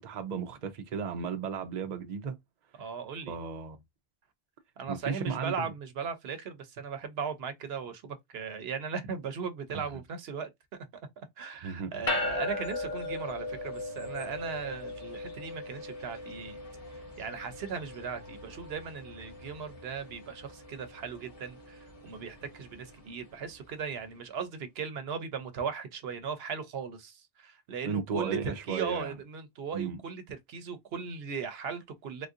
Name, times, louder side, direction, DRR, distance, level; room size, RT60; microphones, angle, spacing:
voice 1, 0.0-2.4 3.3-3.8 4.9-5.7 9.7-9.9 11.6-12.1 27.9-29.1 29.7-30.0, right 5 dB, 50° right, 0.6 m, -35 dB
voice 2, 2.8-3.3 4.8-10.5 11.2-16.6 16.9-32.3, right 6 dB, 75° right, 0.9 m, -38 dB
sound 1, 12.1-23.6, left 2 dB, 35° left, 1.0 m, -39 dB
3.5 x 2.6 x 2.4 m
omnidirectional pair, 1.0 m